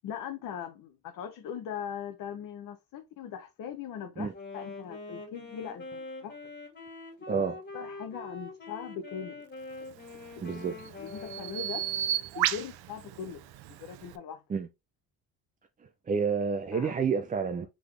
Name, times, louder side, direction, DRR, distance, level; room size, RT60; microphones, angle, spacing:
voice 1, 0.0-6.4 7.2-7.4 7.7-9.5 10.3-10.6 11.0-11.9 12.4-14.4 16.7-16.9, left 8 dB, 65° left, 0.7 m, -40 dB
Wind instrument woodwind instrument, 4.3-12.3, left 3 dB, 30° left, 2.0 m, -44 dB
voice 2, 7.3-7.6 10.4-10.8 14.5-14.7 16.1-17.7, right 5 dB, 25° right, 0.4 m, -29 dB
Bird vocalization bird call bird song, 9.9-14.2, right 12 dB, 85° right, 0.6 m, -34 dB
3.9 x 3.6 x 3.2 m
cardioid pair, 120°, 36 cm